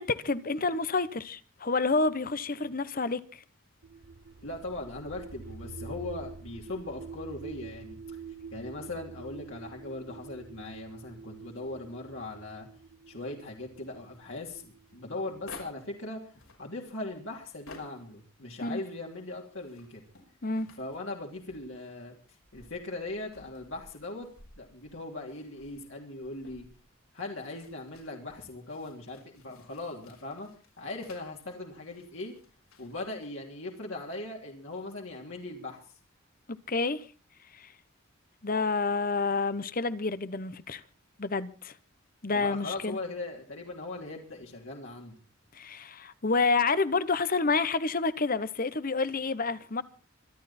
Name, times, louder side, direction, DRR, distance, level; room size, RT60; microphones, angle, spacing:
voice 1, 0.0-3.4 18.6-18.8 20.4-20.7 36.5-37.1 37.5-37.7 38.4-40.8 41.2-41.7 42.2-43.0 45.5-49.8, left 3 dB, 40° left, 1.0 m, -29 dB
sound 1, 3.8-15.6, right 4 dB, 65° right, 0.7 m, -46 dB
voice 2, 4.4-8.2 8.5-12.7 13.1-20.0 20.8-22.1 22.5-24.3 24.6-26.7 27.1-30.5 30.8-32.3 32.8-35.8 42.3-45.1, left 2 dB, 60° left, 3.1 m, -39 dB
sound 2, 13.8-16.0 16.3-18.2 18.6-21.9 22.4-31.5 31.7-33.3, left 2 dB, 80° left, 6.1 m, -55 dB
25.5 x 12.0 x 4.3 m
head